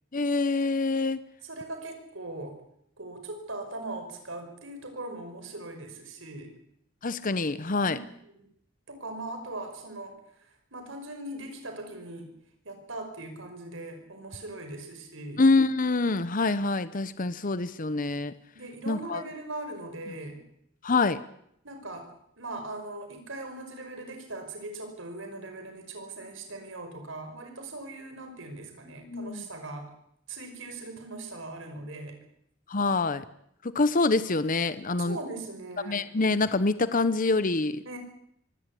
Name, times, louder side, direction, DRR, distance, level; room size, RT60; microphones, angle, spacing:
voice 1, 0.1-1.2 7.0-8.0 15.4-18.3 18.9-19.2 20.8-21.2 29.0-29.4 32.7-33.2 33.6-35.2 35.9-37.8, left 3 dB, 40° left, 14 dB, 0.9 m, -25 dB
voice 2, 1.4-2.6 3.0-6.5 7.8-8.0 8.9-10.2 10.7-12.3 12.6-15.4 18.5-20.4 21.6-22.1 22.4-29.9 30.3-32.2 35.0-36.0 37.9-38.0, right 2 dB, 65° right, 5 dB, 5.5 m, -40 dB
24.0 x 17.0 x 8.5 m, 0.73 s
head